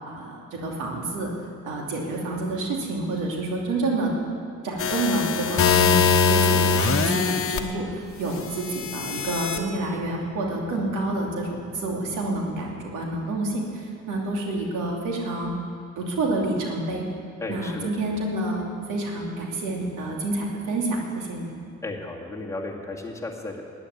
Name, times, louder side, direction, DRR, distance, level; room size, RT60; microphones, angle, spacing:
voice 1, 0.1-1.3 1.6-4.1 4.6-6.0 6.3-15.5 16.0-17.0 17.5-21.5, right 2 dB, 85° right, -1 dB, 2.7 m, -28 dB
sound 1, 4.8-7.6 8.5-9.6, left 5 dB, 45° left, 1.2 m, -22 dB
voice 2, 17.4-17.9 21.8-23.6, left 2 dB, 10° left, -2 dB, 2.3 m, -34 dB
12.0 x 9.8 x 9.6 m, 2.5 s
cardioid pair, 90°, 30 cm